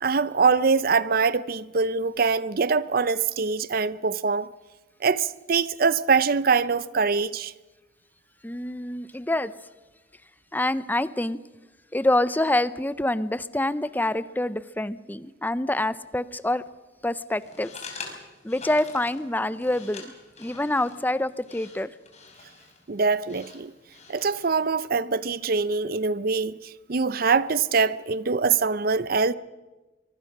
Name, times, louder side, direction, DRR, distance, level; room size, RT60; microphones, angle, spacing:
voice 1, 0.0-4.5 5.0-7.5 22.9-23.7 24.1-29.3, right 5 dB, 55° right, 0.6 m, -23 dB
voice 2, 8.4-9.5 10.5-11.4 11.9-16.6 17.0-17.7 18.1-18.2 18.4-20.1 20.4-21.9, left 1 dB, 10° left, 0.7 m, -26 dB
sound 1, 17.3-24.7, left 4 dB, 40° left, 4.2 m, -45 dB
24.0 x 23.0 x 6.0 m
head